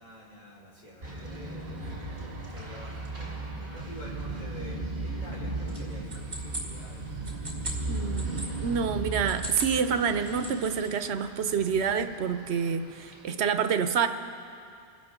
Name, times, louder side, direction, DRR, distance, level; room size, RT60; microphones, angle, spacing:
voice 1, 0.0-1.9 2.2-7.0 7.3-7.4, equal, 40° left, -6 dB, 4.2 m, -47 dB
sound 1, 1.0-13.3, right 2 dB, 60° right, 2.5 m, -37 dB
sound 2, 5.7-8.5 9.1-9.8 10.1-10.9, right 1 dB, 40° right, 2.5 m, -39 dB
voice 2, 7.9-14.1, right 6 dB, 85° right, 9 dB, 1.0 m, -28 dB
27.5 x 11.5 x 3.7 m, 2.4 s
omnidirectional pair, 1.1 m